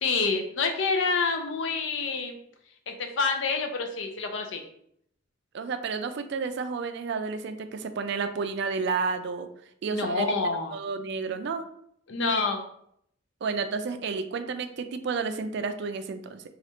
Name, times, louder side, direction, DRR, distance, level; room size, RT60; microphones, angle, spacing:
voice 1, 0.0-2.4 2.9-4.6 9.9-10.7 12.1-12.6, left 4 dB, 65° left, 4 dB, 0.5 m, -27 dB
voice 2, 5.5-9.5 9.8-10.3 10.7-11.6 13.4-16.4, right 5 dB, 60° right, 8 dB, 0.3 m, -31 dB
4.3 x 2.4 x 2.8 m, 0.69 s
head